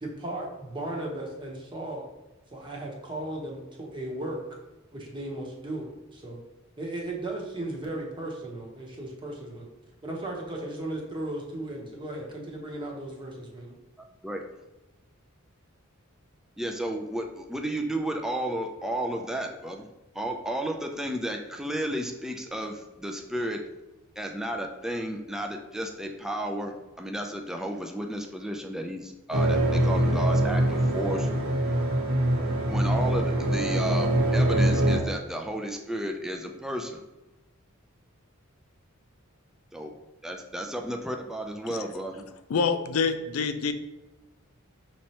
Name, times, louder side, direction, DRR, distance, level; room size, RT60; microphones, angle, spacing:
voice 1, 0.0-2.1 2.5-4.4 4.9-6.4 6.8-9.7 10.0-13.7, right 1 dB, 25° right, -2 dB, 0.9 m, -36 dB
voice 2, 16.6-19.9 20.1-23.6 24.2-31.3 32.7-37.0 39.7-39.9 40.2-42.3, right 1 dB, ahead, 2 dB, 0.4 m, -33 dB
sound 1, 29.3-35.0, right 1 dB, 85° right, 1.2 m, -24 dB
voice 3, 42.5-43.7, left 5 dB, 90° left, 9 dB, 0.4 m, -26 dB
5.7 x 3.2 x 2.9 m, 1.0 s
head